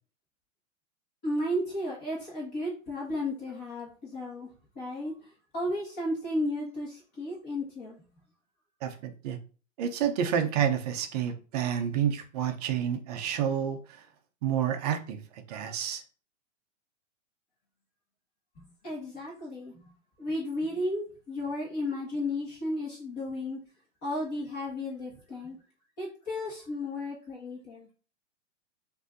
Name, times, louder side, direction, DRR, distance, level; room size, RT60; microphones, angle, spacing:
voice 1, 1.2-4.5 4.7-8.1 18.6-19.9 20.2-23.6 24.0-25.6 26.0-27.9, left 1 dB, 25° left, -4 dB, 1.5 m, -34 dB
voice 2, 9.8-13.8 14.4-15.2 15.5-16.0, right 9 dB, 30° right, 6 dB, 0.6 m, -29 dB
6.2 x 2.7 x 2.6 m, 0.37 s
hypercardioid pair, 150°, 39 cm